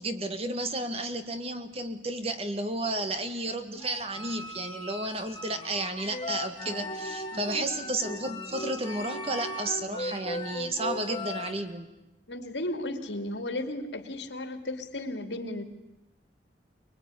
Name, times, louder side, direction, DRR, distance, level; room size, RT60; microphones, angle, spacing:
voice 1, 0.0-11.9, right 2 dB, 35° right, 8 dB, 1.9 m, -32 dB
sound 1, 3.8-11.6, left 1 dB, 25° left, 2.6 m, -38 dB
voice 2, 7.3-7.6 12.3-15.6, left 1 dB, 75° left, 8 dB, 2.8 m, -35 dB
25.0 x 21.5 x 9.8 m, 0.94 s
head